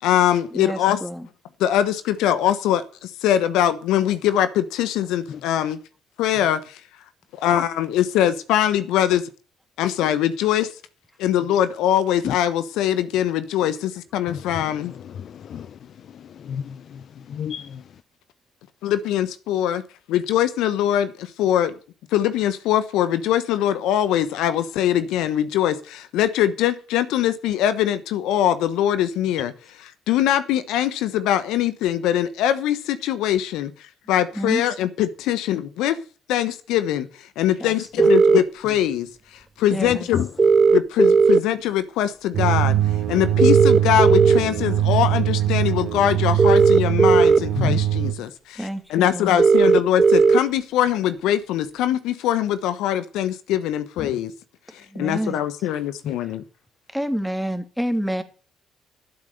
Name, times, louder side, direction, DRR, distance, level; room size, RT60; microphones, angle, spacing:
voice 1, 0.0-1.0 1.6-5.8 6.2-6.8 7.4-9.3 9.8-10.7 11.2-14.9 18.8-19.8 20.1-21.8 22.1-29.5 30.1-36.0 36.3-40.2 40.7-42.8 43.1-48.6 48.9-54.3 54.7-56.4, left 11 dB, 75° left, 1.1 m, -22 dB
voice 2, 0.5-1.3 34.1-34.6 37.6-38.1 39.7-40.1 48.6-49.5 54.8-55.4 56.2-56.3 56.9-58.2, equal, ahead, 2.7 m, -29 dB
voice 3, 14.3-17.8 39.8-40.3 47.5-47.8 54.0-54.2 56.0-56.1, left 8 dB, 60° left, 0.6 m, -31 dB
sound 1, 38.0-38.4 40.4-41.4 43.4-44.4 46.4-47.4 49.4-50.4, right 5 dB, 35° right, 0.8 m, -15 dB
sound 2, 42.3-48.1, right 12 dB, 65° right, 1.8 m, -22 dB
13.0 x 8.1 x 6.6 m
hypercardioid pair, 55°, 0 cm